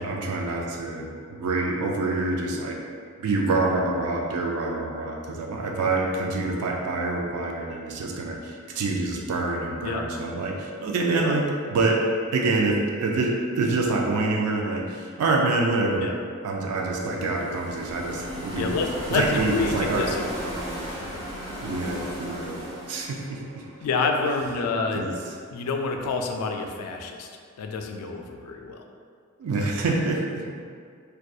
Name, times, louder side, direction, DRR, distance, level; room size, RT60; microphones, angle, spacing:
voice 1, 0.0-2.8 3.2-12.0 12.3-16.1 16.4-20.9 21.6-22.6 22.9-23.6 24.9-25.4 29.4-30.6, right 3 dB, 85° right, 0 dB, 0.3 m, -26 dB
sound 1, 16.6-24.6, equal, 30° right, 1.1 m, -36 dB
voice 2, 18.5-20.4 21.0-21.2 23.8-25.1 25.5-27.3 27.6-28.8 29.6-29.8, left 4 dB, 90° left, 8 dB, 0.3 m, -28 dB
2.6 x 2.2 x 2.3 m, 2.1 s
head